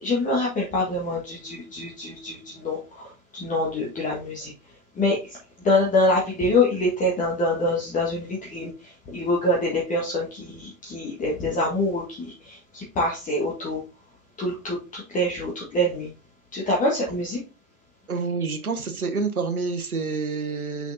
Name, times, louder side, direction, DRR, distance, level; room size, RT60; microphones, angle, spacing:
voice 1, 0.0-3.1 3.3-4.5 4.9-5.4 5.6-13.8 14.4-16.1 16.5-17.4, left 1 dB, 20° left, -3 dB, 1.6 m, -25 dB
voice 2, 18.1-20.9, right 4 dB, 85° right, 7 dB, 1.2 m, -28 dB
6.2 x 5.9 x 2.7 m, 0.31 s
figure-of-eight pair, 105°, 43 cm